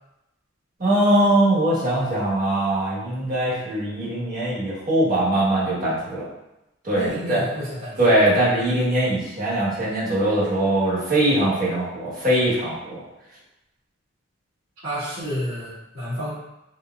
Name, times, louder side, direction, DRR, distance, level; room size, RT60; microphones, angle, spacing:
voice 1, 0.8-6.2 6.8-7.4 8.0-13.0, right 1 dB, 45° right, -8 dB, 1.1 m, -21 dB
voice 2, 6.9-8.0 14.8-16.3, equal, 80° right, -15 dB, 1.4 m, -30 dB
4.0 x 2.0 x 2.3 m, 0.93 s
head